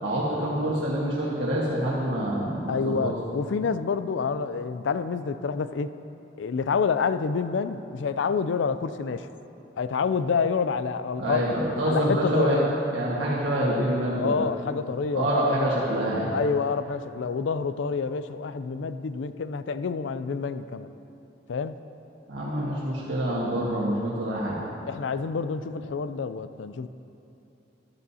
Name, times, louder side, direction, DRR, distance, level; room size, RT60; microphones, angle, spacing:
voice 1, 0.0-3.1 11.2-12.6 12.9-14.4 15.1-16.3 22.3-24.6, right 1 dB, 85° right, -6 dB, 1.5 m, -26 dB
voice 2, 2.7-5.9 6.4-9.3 9.8-11.4 11.8-12.7 14.2-15.6 16.3-20.9 21.5-21.7 24.9-26.9, left 5 dB, 80° left, 12 dB, 0.4 m, -28 dB
13.5 x 11.5 x 2.8 m, 2.9 s
head